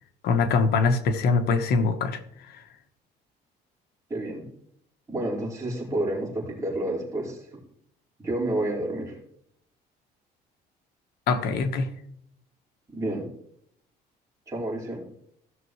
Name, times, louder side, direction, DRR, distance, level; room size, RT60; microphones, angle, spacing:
voice 1, 0.2-2.6 11.3-11.9, left 4 dB, 70° left, 7 dB, 1.2 m, -23 dB
voice 2, 4.1-4.4 5.1-7.5 8.2-9.1 12.9-13.3 14.5-15.0, right 1 dB, 20° right, -5 dB, 4.6 m, -29 dB
16.0 x 6.6 x 3.1 m, 0.70 s
cardioid pair, 110°, 17 cm